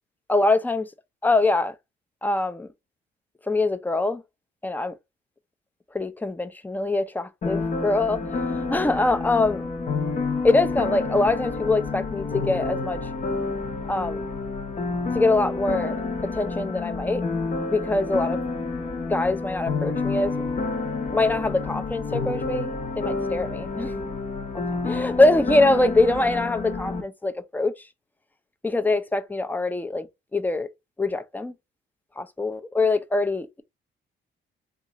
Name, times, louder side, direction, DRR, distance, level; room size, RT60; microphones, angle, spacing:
voice 1, 0.3-0.9 1.2-1.7 2.2-2.7 3.4-4.2 4.6-4.9 5.9-9.7 10.4-13.0 13.9-14.2 15.1-16.0 16.2-17.2 17.7-18.4 19.1-20.3 21.1-24.1 24.9-27.9 28.6-30.7 31.0-31.5 32.2-33.6, left 2 dB, 10° left, 0.4 m, -23 dB
sound 1, 7.4-27.0, left 3 dB, 40° left, 0.8 m, -29 dB
2.8 x 2.4 x 3.9 m
cardioid pair, 90°, 20 cm